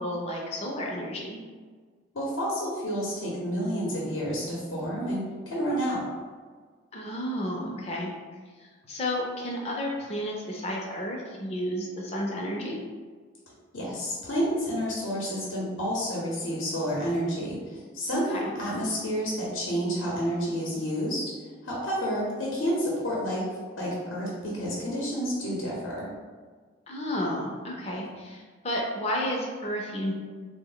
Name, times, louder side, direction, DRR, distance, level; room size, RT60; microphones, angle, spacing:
voice 1, 0.0-1.4 6.9-8.1 8.6-12.8 18.1-18.5 26.9-30.1, equal, 30° left, -2 dB, 0.5 m, -32 dB
voice 2, 2.1-6.0 13.7-21.3 21.6-23.5 23.8-26.1, equal, 75° left, -4 dB, 0.8 m, -30 dB
3.6 x 2.1 x 3.8 m, 1.5 s
head